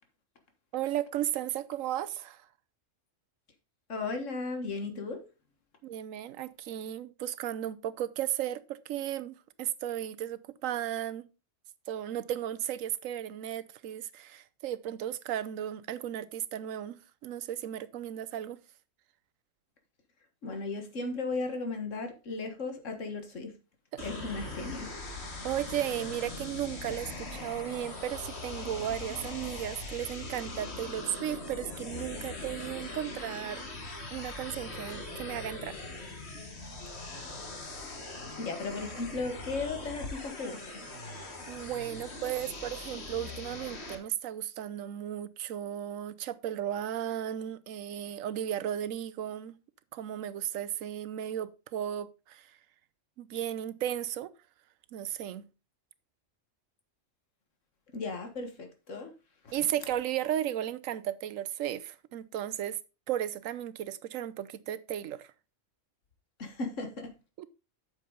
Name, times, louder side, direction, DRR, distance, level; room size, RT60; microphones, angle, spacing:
voice 1, 0.7-2.5 5.8-11.3 11.9-18.6 23.9-24.1 25.4-33.6 34.1-35.7 41.5-49.6 49.9-52.5 53.2-54.3 54.9-55.5 59.5-62.8 63.1-65.3 67.4-67.5, right 11 dB, 85° right, 1.0 m, -35 dB
voice 2, 3.9-5.2 20.4-23.5 24.0-24.9 38.4-40.9 57.9-59.1 59.4-59.5 66.4-67.1, left 3 dB, 75° left, 1.8 m, -36 dB
sound 1, 24.0-44.0, left 2 dB, 55° left, 2.0 m, -41 dB
8.5 x 6.7 x 3.9 m
omnidirectional pair, 1.3 m